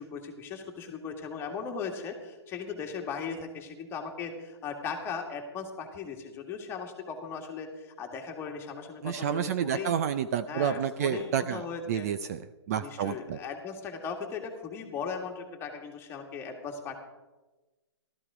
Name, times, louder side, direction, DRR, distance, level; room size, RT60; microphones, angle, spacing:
voice 1, 0.0-9.9 10.5-12.1 12.8-17.0, left 5 dB, 15° left, 2 dB, 1.9 m, -38 dB
voice 2, 9.0-12.4 12.7-13.4, right 8 dB, 35° right, 11 dB, 0.5 m, -30 dB
15.5 x 13.0 x 4.9 m, 1.1 s
hypercardioid pair, 150°, 15 cm